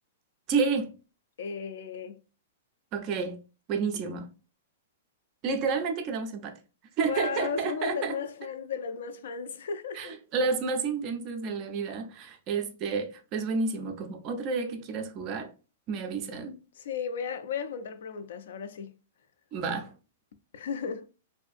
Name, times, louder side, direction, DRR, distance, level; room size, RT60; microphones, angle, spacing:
voice 1, 0.5-0.9 2.9-3.4 3.7-4.3 5.4-6.6 7.0-8.2 10.0-15.5 15.9-16.5 19.5-19.9, right 5 dB, 25° right, 0.4 m, -30 dB
voice 2, 1.4-2.2 7.0-10.2 16.8-18.9 20.5-21.1, left 6 dB, 65° left, 0.3 m, -35 dB
2.5 x 2.5 x 2.4 m
supercardioid pair, 170°, 0 cm